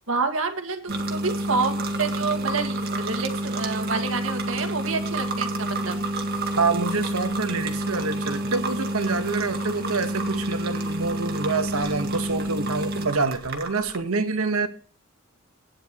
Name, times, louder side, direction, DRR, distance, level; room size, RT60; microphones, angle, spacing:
voice 1, 0.1-6.0, right 4 dB, 70° right, 1.8 m, -28 dB
sound 1, 0.9-14.0, right 1 dB, 50° right, 1.8 m, -28 dB
voice 2, 6.5-14.7, right 4 dB, 90° right, 1.3 m, -26 dB
13.5 x 9.8 x 3.0 m
head